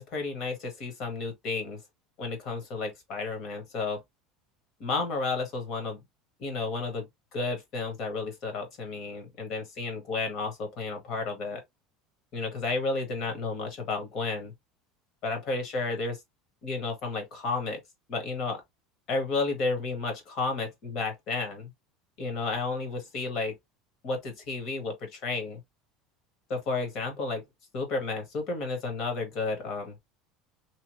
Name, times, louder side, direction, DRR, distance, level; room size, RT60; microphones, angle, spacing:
voice 1, 0.0-1.8 2.2-4.0 4.8-6.0 6.4-7.1 7.3-11.6 12.3-14.5 15.2-16.2 16.6-17.8 18.1-18.6 19.1-21.7 22.2-23.5 24.0-25.6 26.5-27.4 27.7-30.0, left 3 dB, 40° left, 1.2 m, -32 dB
2.9 x 2.2 x 3.0 m
cardioid pair, 165°, 0 cm